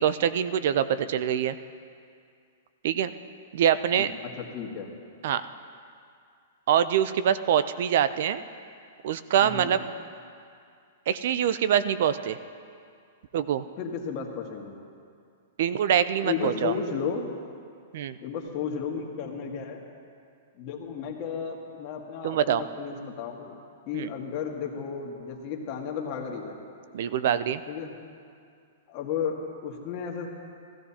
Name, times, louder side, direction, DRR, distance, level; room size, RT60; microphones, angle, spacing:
voice 1, 0.0-1.6 2.8-3.1 3.5-4.1 5.2-5.4 6.7-8.4 9.0-9.8 11.1-12.4 13.3-13.6 15.6-16.7 17.9-18.2 22.2-22.6 23.9-24.1 26.9-27.6, right 9 dB, 60° right, 14 dB, 0.4 m, -24 dB
voice 2, 4.4-4.9 9.4-9.8 13.8-14.7 16.2-17.3 18.2-19.8 20.6-23.6 23.9-26.5 27.7-27.9 28.9-30.3, left 6 dB, 40° left, 0 dB, 1.7 m, -33 dB
16.5 x 14.0 x 2.8 m, 2.3 s
hypercardioid pair, 140°, 0 cm